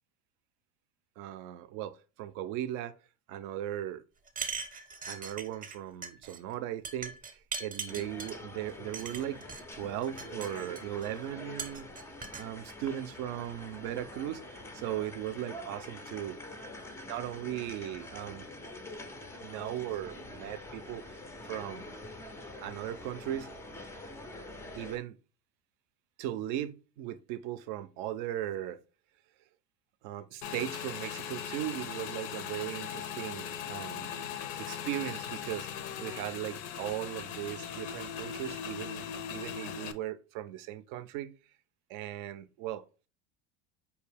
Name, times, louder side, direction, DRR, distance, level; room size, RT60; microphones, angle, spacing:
voice 1, 1.2-3.0 3.3-4.0 5.1-9.4 9.7-11.9 12.4-16.4 17.1-18.5 19.4-21.0 21.5-21.9 22.6-23.5 24.8-25.2 26.2-28.8 30.0-35.7 36.0-41.3 41.9-42.8, right 12 dB, 65° right, 0.5 m, -38 dB
sound 1, 4.3-5.8 6.0-6.4 6.8-8.4 8.9-9.6 10.0-11.1 11.6-12.5, right 5 dB, 25° right, 0.6 m, -40 dB
sound 2, 7.9-25.0, left 1 dB, 10° left, 0.3 m, -46 dB
Motorcycle / Engine, 30.4-39.9, left 8 dB, 70° left, 0.5 m, -39 dB
4.5 x 2.7 x 3.3 m
supercardioid pair, 125°, 33 cm